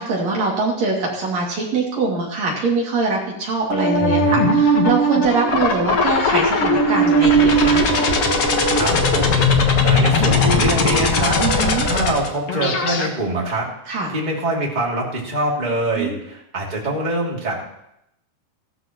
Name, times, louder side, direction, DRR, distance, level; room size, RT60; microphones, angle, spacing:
voice 1, 0.0-7.8 11.4-11.9 13.9-14.1 16.0-16.1, right 3 dB, 45° right, -3 dB, 3.3 m, -23 dB
sound 1, 3.7-13.1, left 1 dB, 80° left, 1.3 m, -18 dB
voice 2, 4.0-4.5 8.7-17.5, right 1 dB, 15° right, -4 dB, 1.9 m, -24 dB
15.5 x 14.0 x 3.1 m, 0.78 s
omnidirectional pair, 5.0 m